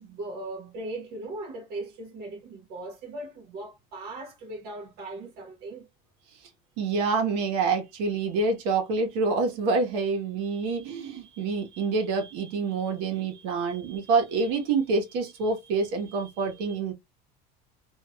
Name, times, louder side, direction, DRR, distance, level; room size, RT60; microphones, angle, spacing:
voice 1, 0.0-5.9, right 2 dB, 50° right, 1.0 m, -38 dB
voice 2, 6.8-16.9, right 4 dB, 85° right, 1.3 m, -27 dB
3.2 x 2.8 x 2.3 m
cardioid pair, 160°, 20 cm